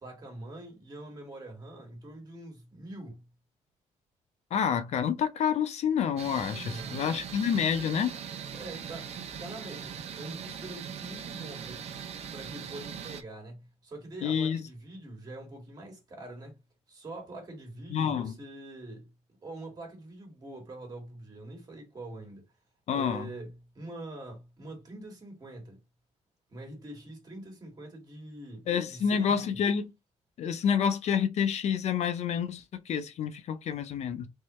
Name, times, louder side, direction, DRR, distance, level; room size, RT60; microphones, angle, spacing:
voice 1, 0.0-3.2 6.6-7.0 8.5-11.9 12.3-16.6 16.9-19.1 19.4-22.4 22.9-25.8 26.5-29.7, right 2 dB, 30° right, 2.1 m, -44 dB
voice 2, 4.5-8.1 14.2-14.6 17.9-18.3 22.9-23.3 28.7-29.8 30.4-34.3, left 7 dB, 60° left, 0.6 m, -28 dB
sound 1, 6.2-13.2, right 8 dB, 55° right, 0.7 m, -40 dB
3.6 x 3.1 x 3.0 m
cardioid pair, 135°, 12 cm